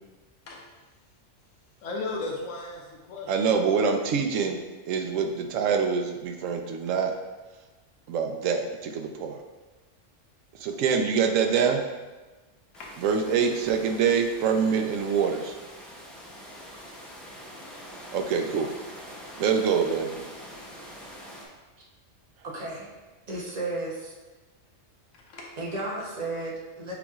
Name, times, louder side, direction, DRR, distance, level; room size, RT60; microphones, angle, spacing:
voice 1, 1.8-3.4 12.7-12.9 25.1-25.5, left 3 dB, 75° left, -1 dB, 1.0 m, -35 dB
voice 2, 3.3-4.6 4.9-7.1 8.1-9.4 10.6-11.8 13.0-15.5 18.1-18.7 19.4-20.3, right 6 dB, 80° right, 4 dB, 1.0 m, -25 dB
sound 1, 12.7-21.4, equal, ahead, 0.4 m, -44 dB
voice 3, 22.4-22.9 23.3-24.1 25.6-26.9, right 2 dB, 35° right, -3 dB, 0.8 m, -33 dB
7.0 x 3.0 x 2.4 m, 1.2 s
omnidirectional pair, 1.3 m